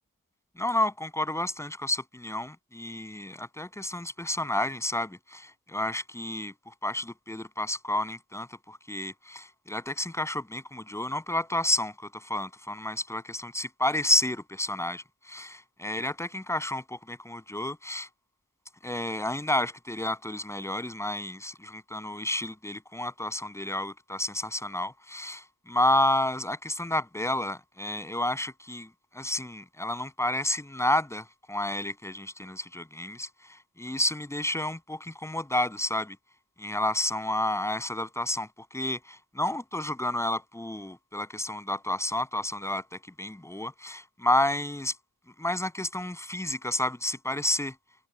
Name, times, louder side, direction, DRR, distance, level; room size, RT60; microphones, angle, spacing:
voice 1, 0.6-18.1 18.8-28.9 29.1-36.2 36.6-44.9 45.4-47.7, left 1 dB, 10° left, 7.5 m, -30 dB
cardioid pair, 90°, 30 cm